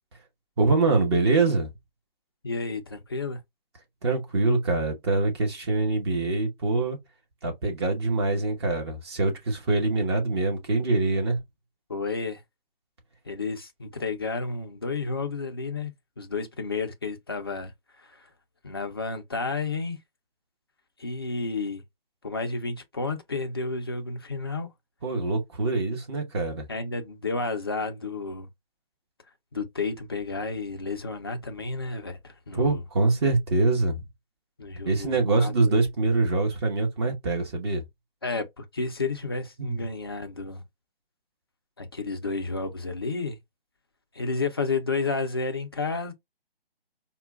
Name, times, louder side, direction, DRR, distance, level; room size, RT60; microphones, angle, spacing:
voice 1, 0.6-1.7 4.0-7.0 7.4-11.4 25.0-26.7 32.5-34.0 34.8-37.8 39.6-39.8, right 3 dB, 25° right, 0.7 m, -24 dB
voice 2, 2.4-3.4 11.9-12.4 13.3-17.7 18.0-18.3 18.6-20.0 21.0-21.8 22.2-24.7 26.7-28.5 29.5-32.8 34.6-35.5 38.2-40.6 41.8-43.4 44.1-46.1, left 3 dB, 25° left, 0.3 m, -31 dB
4.3 x 2.1 x 2.2 m
figure-of-eight pair, 145°, 30 cm